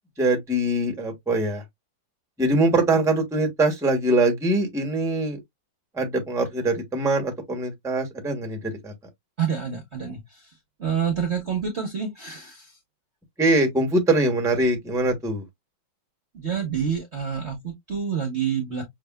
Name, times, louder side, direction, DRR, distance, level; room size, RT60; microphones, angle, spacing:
voice 1, 0.2-1.6 2.4-5.4 6.0-8.6 8.8-8.9 13.4-15.4, right 2 dB, ahead, 0.9 m, -23 dB
voice 2, 9.4-12.8 16.3-18.8, right 7 dB, 45° right, 1.0 m, -28 dB
6.0 x 2.8 x 2.2 m
omnidirectional pair, 2.2 m